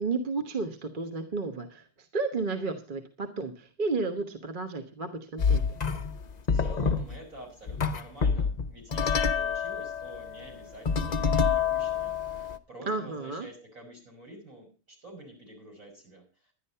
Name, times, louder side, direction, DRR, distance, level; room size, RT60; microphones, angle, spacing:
voice 1, 0.0-5.6 12.9-13.5, right 3 dB, 35° right, 7 dB, 1.2 m, -32 dB
sound 1, 5.4-6.2 6.5-7.2 7.7-12.6, left 6 dB, 40° left, 0.6 m, -27 dB
voice 2, 6.5-16.2, right 1 dB, 55° right, -2 dB, 6.4 m, -48 dB
11.5 x 10.5 x 5.6 m, 0.34 s
omnidirectional pair, 1.6 m